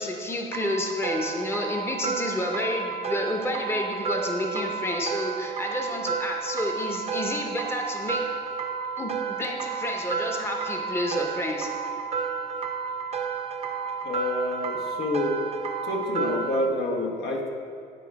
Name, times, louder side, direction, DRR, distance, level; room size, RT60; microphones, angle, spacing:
voice 1, 0.0-8.2 9.0-11.7, left 1 dB, 15° left, 2 dB, 0.8 m, -30 dB
sound 1, 0.5-16.7, right 6 dB, 40° right, 0.6 m, -31 dB
voice 2, 14.0-15.5 15.8-17.5, left 2 dB, 75° left, 0 dB, 1.3 m, -28 dB
9.9 x 4.9 x 4.7 m, 2.3 s
cardioid pair, 110°, 17 cm